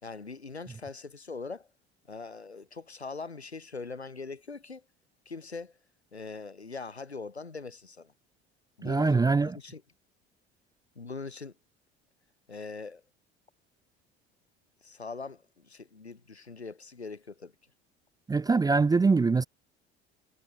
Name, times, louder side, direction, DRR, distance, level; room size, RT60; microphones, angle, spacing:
voice 1, 0.0-1.7 2.1-4.8 5.3-5.7 6.1-8.1 8.8-9.8 11.0-11.5 12.5-13.0 14.8-17.5, left 4 dB, 90° left, 5.3 m, -41 dB
voice 2, 8.8-9.6 18.3-19.4, right 4 dB, 10° right, 0.5 m, -23 dB
figure-of-eight pair, 65°, 32 cm